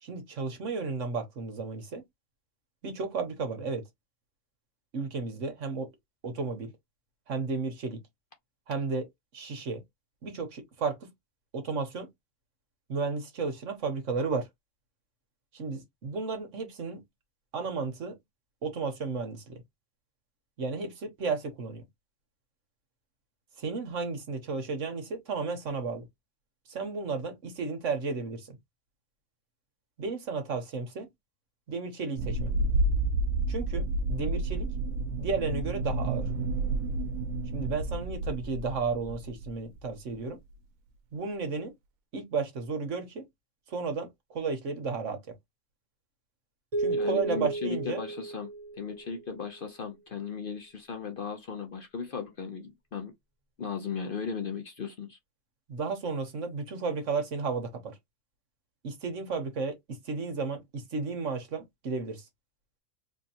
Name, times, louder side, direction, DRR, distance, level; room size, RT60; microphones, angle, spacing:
voice 1, 0.0-2.0 2.8-3.9 4.9-5.9 6.2-6.7 7.3-8.0 8.7-9.1 9.3-9.8 10.2-11.1 11.5-12.1 12.9-14.5 15.5-17.0 17.5-18.2 18.6-19.6 20.6-21.8 23.6-26.1 26.7-28.6 30.0-31.1 31.7-32.5 33.5-34.7 35.2-36.2 37.5-40.4 41.1-41.7 42.1-43.3 43.7-45.3 46.8-48.0 55.7-58.0 58.8-62.2, right 4 dB, 70° right, 1.4 m, -33 dB
sound 1, 32.2-39.5 39.8-39.9 40.5-40.6, right 2 dB, 90° right, 1.0 m, -30 dB
sound 2, 46.7-49.3, right 3 dB, 40° right, 0.6 m, -33 dB
voice 2, 46.9-53.1 53.6-55.2, left 5 dB, 50° left, 0.7 m, -36 dB
4.4 x 2.5 x 2.8 m
omnidirectional pair, 1.4 m